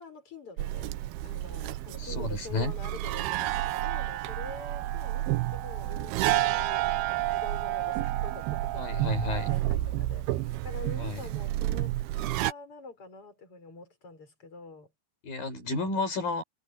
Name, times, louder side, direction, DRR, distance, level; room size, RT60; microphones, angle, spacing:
voice 1, 0.0-14.9, left 4 dB, 35° left, 7.2 m, -46 dB
sound 1, 0.6-12.5, right 15 dB, 85° right, 2.7 m, -30 dB
voice 2, 2.0-2.7 8.8-9.5 11.0-11.2 15.2-16.4, left 3 dB, 65° left, 6.2 m, -31 dB
omnidirectional pair, 4.4 m